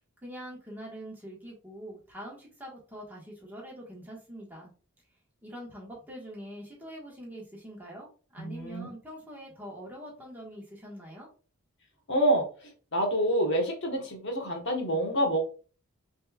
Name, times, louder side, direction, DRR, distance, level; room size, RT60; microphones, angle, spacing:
voice 1, 0.2-4.7 5.4-11.3, equal, 10° right, -4 dB, 1.4 m, -44 dB
voice 2, 8.4-8.9 12.1-15.4, right 1 dB, 50° left, 1 dB, 1.2 m, -27 dB
5.1 x 3.5 x 2.3 m, 0.37 s
head